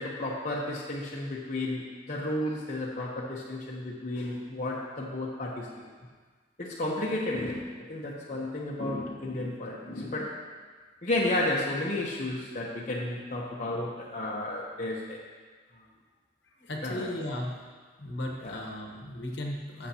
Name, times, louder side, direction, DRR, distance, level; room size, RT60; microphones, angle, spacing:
voice 1, 0.0-5.9 6.6-10.4 11.0-15.2 15.7-15.8 16.8-17.1 18.4-18.6, left 1 dB, 40° left, -4 dB, 0.9 m, -32 dB
voice 2, 16.6-17.5 18.0-19.9, left 1 dB, 65° left, 1 dB, 1.2 m, -36 dB
13.5 x 6.6 x 2.9 m, 1.5 s
head